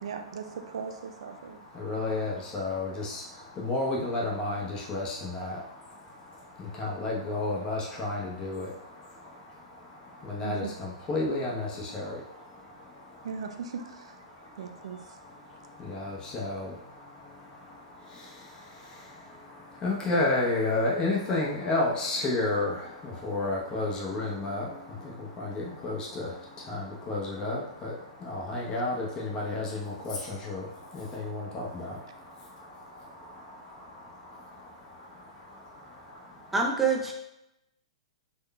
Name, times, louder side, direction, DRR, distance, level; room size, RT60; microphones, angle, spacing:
voice 1, 0.0-1.6 10.4-10.8 13.2-14.1 14.6-15.0, right 6 dB, 65° right, 6 dB, 0.4 m, -38 dB
voice 2, 1.8-3.2 3.6-5.6 6.8-8.7 10.2-11.7 11.9-12.1 15.9-16.7 19.8-22.7 23.2-24.7 25.4-26.3 26.7-27.9 28.2-30.6 30.9-31.8, left 2 dB, 25° left, -3 dB, 0.8 m, -30 dB
voice 3, 36.5-37.1, right 4 dB, 5° right, 1 dB, 0.5 m, -25 dB
3.9 x 3.0 x 2.2 m, 0.85 s
hypercardioid pair, 115°, 3 cm